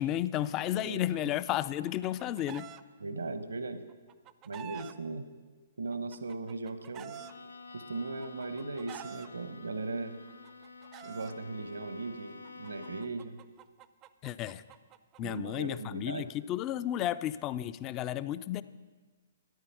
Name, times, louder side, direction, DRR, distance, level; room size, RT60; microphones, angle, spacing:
voice 1, 0.0-2.7 14.2-14.6 15.2-18.6, left 12 dB, 25° left, 15 dB, 0.4 m, -33 dB
voice 2, 0.7-1.3 3.0-3.8 4.4-5.3 5.8-7.2 7.7-10.2 11.0-13.4 15.2-16.3, right 3 dB, 75° right, 10 dB, 0.9 m, -38 dB
Chicken rooster, 1.7-2.8 3.9-4.9 5.9-7.3 8.2-9.3 10.3-11.3 12.4-15.8, right 11 dB, 25° right, 0.5 m, -48 dB
Bowed string instrument, 7.1-13.3, left 4 dB, 80° left, 0.7 m, -50 dB
13.0 x 10.0 x 5.5 m, 1.4 s
figure-of-eight pair, 120°, 0 cm